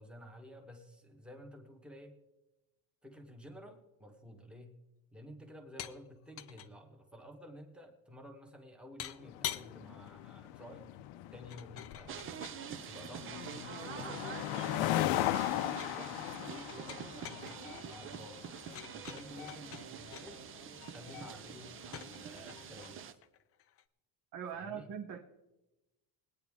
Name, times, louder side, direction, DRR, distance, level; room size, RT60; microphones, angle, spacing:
voice 1, 0.0-2.1 3.0-4.7 5.1-10.9 11.3-12.4 12.9-13.3 13.9-18.4 18.9-20.5 20.9-23.2 24.5-24.9, equal, ahead, 3 dB, 1.2 m, -52 dB
sound 1, 5.8-6.0 6.3-6.7 9.0-9.7 11.5-12.6 13.6-14.8 15.1-16.1 16.6-20.3 21.8-23.8, left 11 dB, 35° left, 0.4 m, -46 dB
sound 2, 9.2-22.8, left 14 dB, 85° left, 0.7 m, -39 dB
sound 3, 12.1-23.1, right 9 dB, 30° right, 0.4 m, -46 dB
voice 2, 24.3-25.2, right 7 dB, 45° right, 3 dB, 0.9 m, -41 dB
21.0 x 9.3 x 3.6 m, 1.0 s
cardioid pair, 165°, 45 cm